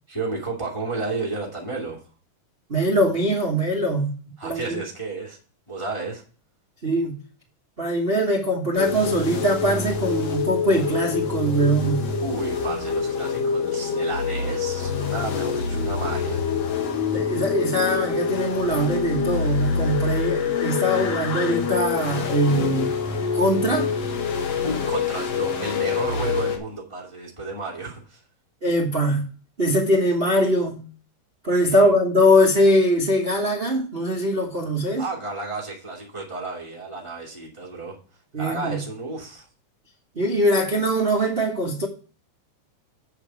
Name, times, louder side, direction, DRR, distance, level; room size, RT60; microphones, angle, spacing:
voice 1, 0.1-2.0 4.4-5.4 5.7-6.2 12.2-16.4 24.6-28.2 31.7-31.9 35.0-38.0 38.4-39.5, right 3 dB, 10° left, 1.9 m, -32 dB
voice 2, 2.7-4.1 4.4-4.8 6.8-7.2 7.8-12.1 17.1-22.9 23.3-23.9 28.6-29.2 29.6-30.8 31.4-35.1 38.3-38.8 40.1-41.9, equal, 85° right, 0.5 m, -22 dB
sound 1, 8.8-26.6, left 5 dB, 60° left, 2.1 m, -26 dB
7.6 x 6.9 x 4.9 m
omnidirectional pair, 3.6 m